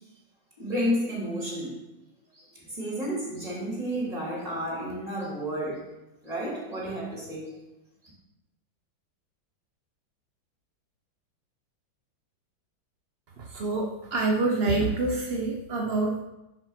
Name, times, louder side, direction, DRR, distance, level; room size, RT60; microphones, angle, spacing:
voice 1, 0.6-1.8 2.3-5.8 6.2-7.6, equal, 20° right, -4 dB, 3.1 m, -31 dB
voice 2, 13.4-16.2, right 3 dB, 50° right, 2 dB, 0.7 m, -27 dB
10.5 x 5.8 x 5.8 m, 0.95 s
omnidirectional pair, 2.1 m